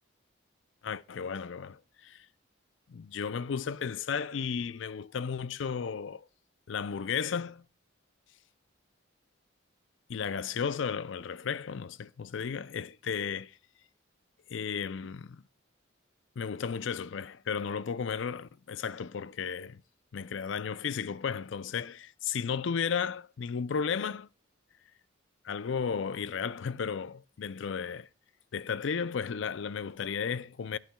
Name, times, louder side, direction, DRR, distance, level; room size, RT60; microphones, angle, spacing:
voice 1, 0.8-2.3 2.9-6.2 6.7-7.7 10.1-13.6 14.5-15.4 16.4-19.8 20.1-24.3 25.4-28.1 28.5-30.8, left 6 dB, 70° left, 0.4 m, -34 dB
18.0 x 8.8 x 2.3 m
head